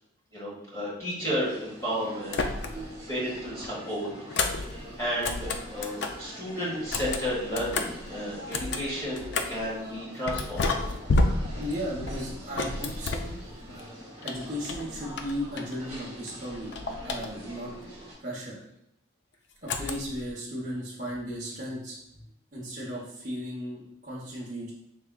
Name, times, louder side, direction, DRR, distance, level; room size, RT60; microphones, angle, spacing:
voice 1, 0.3-2.4 3.1-4.1 4.3-10.7, equal, 15° left, -6 dB, 1.4 m, -32 dB
sound 1, 1.4-18.1, right 1 dB, 15° right, 1.2 m, -45 dB
sound 2, 2.3-3.0 3.3-6.3 6.8-9.7 10.3-13.8 14.2-16.0 16.3-17.7 19.7-20.3, left 3 dB, 60° left, 0.4 m, -31 dB
voice 2, 2.6-3.0 11.6-13.7 14.2-17.7 18.2-18.6 19.6-22.2 22.5-24.7, equal, 40° right, -8 dB, 0.8 m, -36 dB
4.9 x 3.3 x 2.2 m, 0.78 s
head